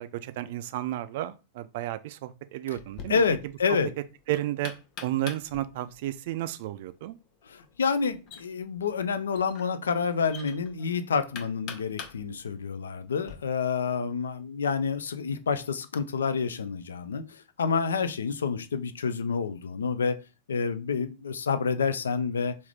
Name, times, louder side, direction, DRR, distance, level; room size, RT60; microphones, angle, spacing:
voice 1, 0.0-3.2 4.3-4.7 5.0-7.2, right 14 dB, 50° right, 0.3 m, -32 dB
Knock, 2.7-13.3, left 6 dB, 40° left, 0.7 m, -46 dB
voice 2, 3.1-3.9 7.5-20.2 20.5-22.6, left 5 dB, 70° left, 0.4 m, -28 dB
3.4 x 2.6 x 3.3 m
figure-of-eight pair, 90°, 0 cm